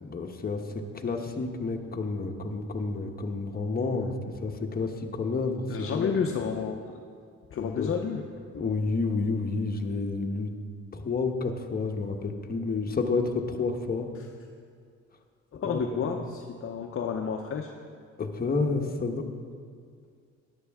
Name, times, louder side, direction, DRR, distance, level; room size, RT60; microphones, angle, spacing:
voice 1, 0.0-6.1 7.6-7.9 8.5-10.5 10.9-14.1 15.6-16.2 18.2-19.3, left 3 dB, 30° left, 3 dB, 1.1 m, -30 dB
voice 2, 5.7-7.0 7.5-8.3 15.5-17.7, left 6 dB, 45° left, 2 dB, 0.7 m, -31 dB
13.0 x 11.0 x 3.6 m, 2.1 s
cardioid pair, 90°, 30 cm